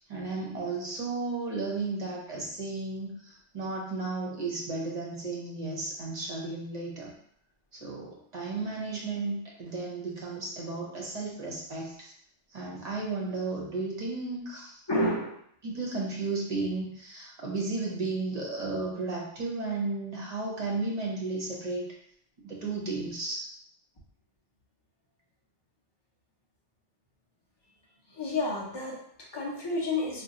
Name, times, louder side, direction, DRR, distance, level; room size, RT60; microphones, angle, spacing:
voice 1, 0.0-7.1 7.7-12.1 12.5-14.8 15.6-21.9 22.4-23.4, right 3 dB, 40° right, -3 dB, 0.7 m, -34 dB
voice 2, 14.9-15.4 28.1-30.2, left 2 dB, 30° left, -3 dB, 0.5 m, -30 dB
2.5 x 2.2 x 4.0 m, 0.66 s
omnidirectional pair, 1.2 m